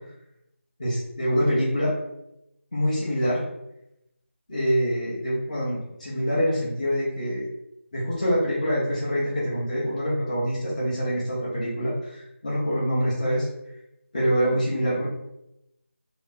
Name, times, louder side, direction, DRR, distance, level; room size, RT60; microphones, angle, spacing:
voice 1, 0.8-1.9 2.7-3.4 4.5-7.4 7.9-13.5 14.1-15.1, equal, 30° left, -8 dB, 1.0 m, -25 dB
3.1 x 2.5 x 3.6 m, 0.84 s
figure-of-eight pair, 165°, 7 cm